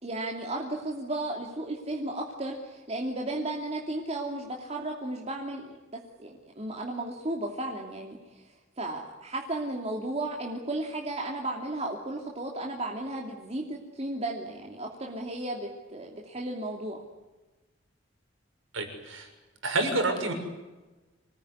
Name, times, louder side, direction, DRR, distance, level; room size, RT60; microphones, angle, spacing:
voice 1, 0.0-5.8 6.2-17.1, right 1 dB, 30° right, 0 dB, 2.8 m, -34 dB
voice 2, 18.7-19.3 19.6-20.3, right 2 dB, 75° right, 5 dB, 6.6 m, -28 dB
27.0 x 19.0 x 9.8 m, 1.2 s
head